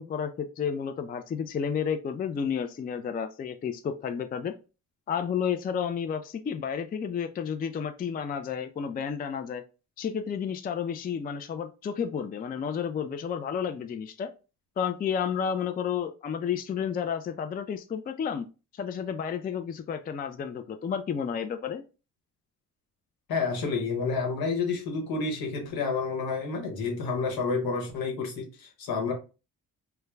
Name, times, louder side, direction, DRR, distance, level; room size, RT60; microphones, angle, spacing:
voice 1, 0.0-4.6 5.1-9.6 10.0-14.3 14.8-18.5 18.7-21.8, left 7 dB, 25° left, 0.3 m, -31 dB
voice 2, 23.3-29.1, left 4 dB, 75° left, 1.1 m, -29 dB
2.3 x 2.2 x 3.1 m
supercardioid pair, 55°, 36 cm